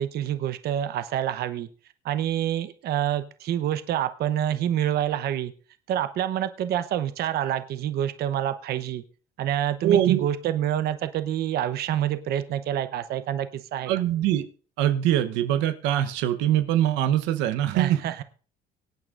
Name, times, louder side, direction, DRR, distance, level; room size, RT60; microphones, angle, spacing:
voice 1, 0.0-1.7 2.0-5.5 5.9-9.0 9.4-13.9 17.7-18.2, right 11 dB, 60° right, 10 dB, 0.9 m, -27 dB
voice 2, 9.8-10.3 13.9-14.5 14.8-18.0, right 11 dB, 85° right, 9 dB, 1.0 m, -23 dB
24.0 x 9.1 x 2.6 m, 0.39 s
cardioid pair, 115°, 18 cm